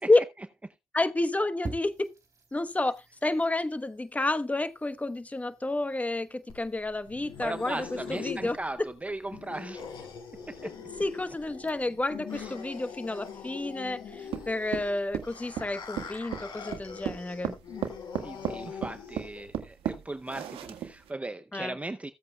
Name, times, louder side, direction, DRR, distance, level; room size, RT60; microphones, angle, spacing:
voice 1, 0.9-2.1 2.5-2.9 3.2-8.9 11.0-17.5 21.5-21.8, left 2 dB, 15° left, 1.1 m, -30 dB
sound 1, 1.6-15.6, right 4 dB, 35° right, 3.4 m, -51 dB
sound 2, 6.5-19.5, left 6 dB, 60° left, 7.1 m, -43 dB
voice 2, 7.4-9.9 10.5-10.7 12.3-12.5 14.2-14.4 18.2-22.1, right 2 dB, 15° right, 0.7 m, -38 dB
sound 3, 14.3-21.1, right 9 dB, 75° right, 1.6 m, -35 dB
16.0 x 8.2 x 2.3 m
supercardioid pair, 75°, 10 cm